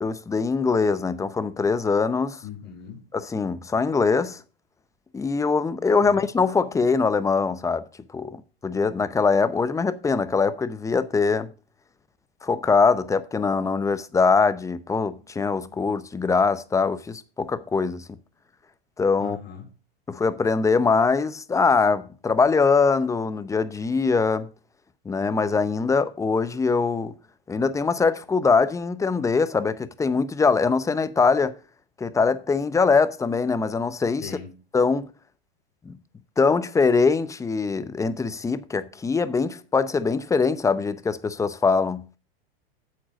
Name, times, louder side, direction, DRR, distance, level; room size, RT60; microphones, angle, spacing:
voice 1, 0.0-2.4 3.3-4.4 5.1-7.8 8.1-11.5 12.4-18.1 19.0-19.4 20.1-24.5 25.1-27.1 27.5-31.6 32.0-34.3 34.7-35.1 35.9-36.0 36.4-42.0, left 4 dB, 10° left, 0.6 m, -22 dB
voice 2, 2.4-3.1 6.0-6.3 19.2-19.7 34.2-34.5, left 8 dB, 35° left, 3.8 m, -39 dB
8.8 x 7.5 x 5.0 m
hypercardioid pair, 115°, 31 cm